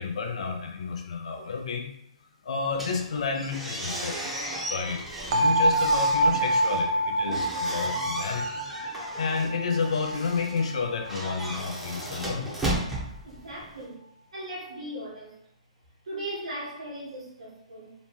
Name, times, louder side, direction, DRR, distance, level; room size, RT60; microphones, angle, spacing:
voice 1, 0.0-1.9 2.4-4.3 4.7-5.0 5.3-8.6 9.2-12.5, left 5 dB, 65° left, 3 dB, 0.5 m, -30 dB
sound 1, 2.7-13.8, right 1 dB, 5° right, 0.7 m, -36 dB
sound 2, 5.3-11.2, right 1 dB, 55° right, 0.4 m, -26 dB
voice 2, 13.2-14.0 14.3-15.3 16.1-17.9, right 1 dB, 75° right, -3 dB, 1.2 m, -38 dB
3.0 x 2.2 x 2.9 m, 0.77 s
figure-of-eight pair, 130°, 4 cm